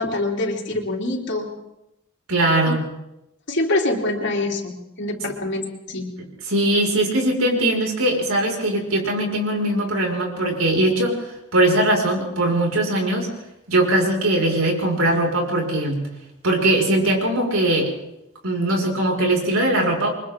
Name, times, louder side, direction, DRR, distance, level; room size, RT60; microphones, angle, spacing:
voice 1, 0.0-1.5 2.7-2.8 3.5-6.1, left 2 dB, 55° left, 1 dB, 3.3 m, -25 dB
voice 2, 2.3-2.8 6.5-11.2 11.5-13.3 13.7-16.0 16.4-17.9 18.4-20.1, right 1 dB, 85° right, 0 dB, 5.6 m, -20 dB
29.0 x 24.0 x 3.8 m, 0.90 s
head